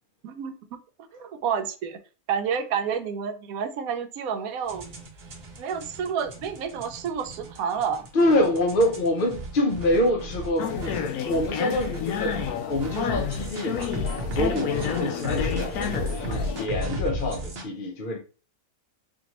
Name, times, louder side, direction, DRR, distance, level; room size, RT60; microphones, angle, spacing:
voice 1, 0.2-0.8 1.1-2.0 2.3-4.9 5.6-8.0 14.8-15.1, right 7 dB, 75° right, 1.0 m, -30 dB
sound 1, 4.7-17.6, equal, 50° right, 0.9 m, -35 dB
voice 2, 8.1-12.4 12.7-13.9 14.3-18.2, left 1 dB, 50° left, 0.6 m, -26 dB
sound 2, 10.6-16.7, left 8 dB, 90° left, 1.1 m, -30 dB
4.2 x 2.9 x 2.9 m
omnidirectional pair, 1.6 m